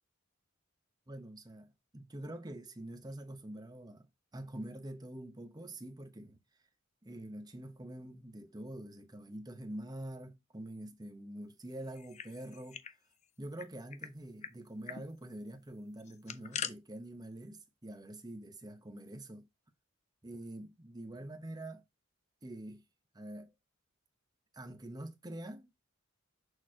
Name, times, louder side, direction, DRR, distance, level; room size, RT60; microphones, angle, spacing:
voice 1, 1.1-6.4 7.0-12.8 13.4-19.5 20.2-21.8 22.4-22.8 23.1-23.5 24.5-25.7, right 1 dB, 20° right, 0.9 m, -46 dB
sound 1, 11.9-13.0 13.2-13.3 13.6-14.1 14.4-14.5 14.8-15.0 16.0-16.7, left 8 dB, 35° left, 0.4 m, -42 dB
6.4 x 3.1 x 4.9 m
head